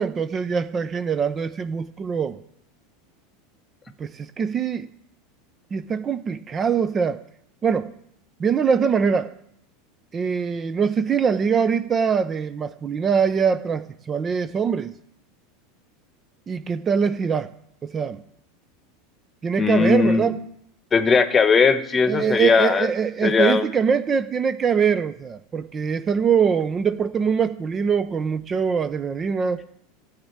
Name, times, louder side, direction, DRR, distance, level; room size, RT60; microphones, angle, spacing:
voice 1, 0.0-2.4 4.0-4.9 5.7-7.2 7.6-7.9 8.4-9.3 10.1-15.0 16.5-17.5 17.8-18.2 19.4-20.4 22.1-29.6, right 6 dB, 30° right, 0.6 m, -23 dB
voice 2, 19.6-20.3 20.9-22.9 23.2-23.6, left 5 dB, 25° left, 1.1 m, -18 dB
12.5 x 5.2 x 8.7 m
hypercardioid pair, 85°, 0 cm